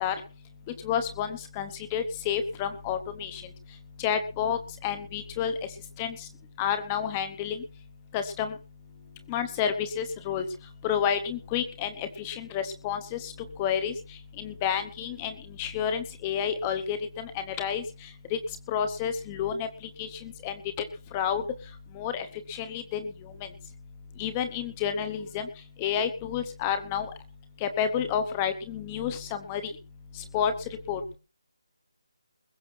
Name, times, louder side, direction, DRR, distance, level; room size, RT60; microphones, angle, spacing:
voice 1, 0.8-3.4 4.0-5.5 6.0-6.2 6.6-7.6 8.1-8.5 9.3-10.4 10.8-13.3 13.6-13.9 14.4-15.3 15.6-17.8 18.3-18.4 18.7-19.7 20.0-20.5 21.1-21.4 22.0-23.1 24.2-25.5 25.8-27.1 27.6-29.6 30.3-30.5 30.9-31.0, left 8 dB, 10° left, 10 dB, 0.9 m, -30 dB
21.0 x 7.1 x 6.1 m, 0.35 s
hypercardioid pair, 180°, 3 cm